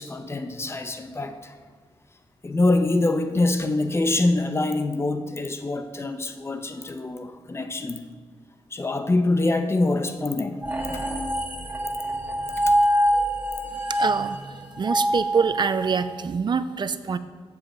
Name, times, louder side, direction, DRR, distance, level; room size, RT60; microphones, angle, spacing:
voice 1, 0.0-1.5 2.4-8.0 8.7-10.6 12.7-12.8, left 2 dB, 25° left, 8 dB, 0.5 m, -25 dB
sound 1, 10.6-16.0, equal, 20° right, 0.9 m, -25 dB
voice 2, 14.0-14.4 14.8-17.2, right 5 dB, 45° right, 12 dB, 0.4 m, -25 dB
7.5 x 7.2 x 3.8 m, 1.5 s
wide cardioid pair, 105°, 10 cm